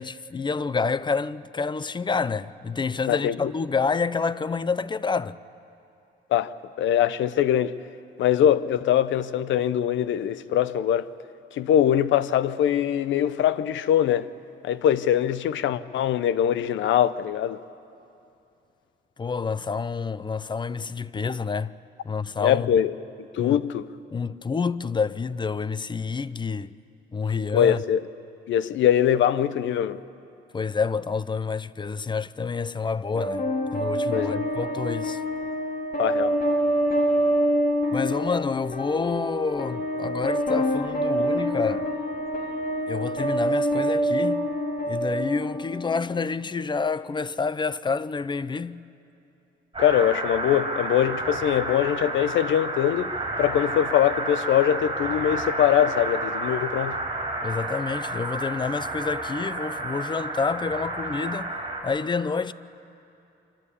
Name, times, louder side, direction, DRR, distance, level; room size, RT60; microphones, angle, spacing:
voice 1, 0.0-5.4 19.2-21.7 22.0-22.7 23.4-23.6 24.1-26.7 27.1-27.8 30.5-35.2 37.9-41.9 42.9-44.5 44.9-48.8 57.4-61.5 61.8-62.5, left 5 dB, 25° left, 0.5 m, -28 dB
voice 2, 3.1-3.5 6.3-7.7 8.2-11.1 11.5-14.3 14.6-17.6 22.4-22.9 23.2-23.9 27.5-28.0 28.5-30.0 34.1-34.4 36.0-36.4 49.8-57.0, left 10 dB, 75° left, 0.6 m, -22 dB
sound 1, 33.2-46.2, equal, 45° left, 2.5 m, -26 dB
sound 2, 49.7-61.8, right 2 dB, 20° right, 6.1 m, -31 dB
26.0 x 12.5 x 8.5 m
cardioid pair, 90°, 20 cm